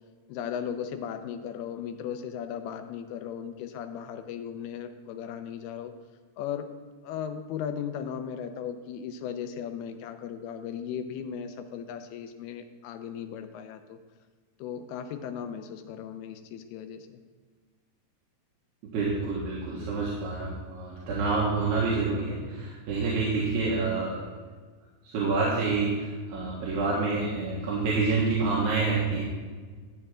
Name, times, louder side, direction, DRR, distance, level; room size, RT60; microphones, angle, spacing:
voice 1, 0.3-5.9 6.4-6.7 7.0-14.0 14.6-17.1, left 8 dB, 80° left, 8 dB, 2.7 m, -36 dB
voice 2, 18.9-24.2 25.0-29.2, right 3 dB, 90° right, -6 dB, 3.6 m, -27 dB
13.0 x 8.0 x 3.7 m, 1.5 s
omnidirectional pair, 4.5 m